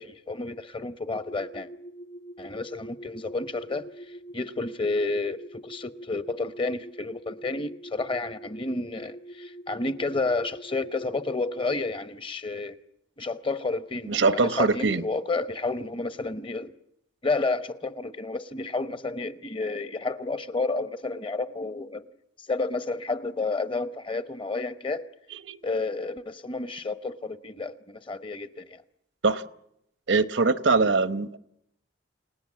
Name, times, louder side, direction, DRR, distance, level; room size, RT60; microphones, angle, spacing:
voice 1, 0.0-1.7 2.4-12.8 13.2-16.7 17.2-22.1 22.4-25.1 25.6-28.8, left 3 dB, 25° left, 0.8 m, -31 dB
sound 1, 1.1-11.9, right 1 dB, 55° left, 2.1 m, -44 dB
voice 2, 14.1-15.0 25.5-25.6 29.2-29.4 30.1-31.4, right 4 dB, 80° right, 1.0 m, -22 dB
29.5 x 18.0 x 7.4 m
head